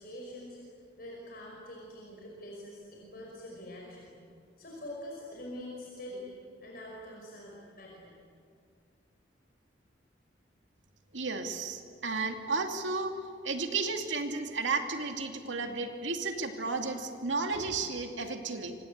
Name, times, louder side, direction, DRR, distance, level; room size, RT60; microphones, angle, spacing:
voice 1, 0.0-4.1 4.6-6.3 6.6-8.2, left 1 dB, 50° left, -2 dB, 5.3 m, -45 dB
voice 2, 11.1-13.2 13.4-18.7, right 3 dB, 85° right, 4 dB, 2.6 m, -33 dB
27.0 x 26.0 x 8.3 m, 2.3 s
head